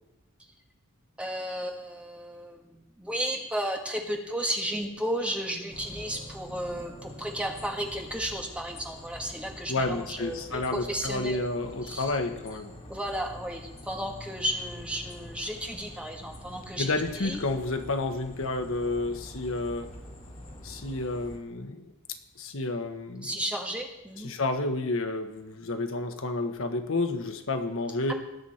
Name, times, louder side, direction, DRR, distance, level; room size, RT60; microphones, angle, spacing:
voice 1, 1.2-11.5 11.8-12.2 12.9-17.4 23.2-24.3, equal, 5° right, 1 dB, 1.5 m, -33 dB
sound 1, 5.7-21.4, left 1 dB, 30° left, 2.5 m, -45 dB
voice 2, 9.7-12.7 16.8-19.9 20.6-21.9 22.4-23.3 24.2-28.1, left 2 dB, 65° left, 6 dB, 1.2 m, -30 dB
19.0 x 9.2 x 4.4 m, 0.98 s
head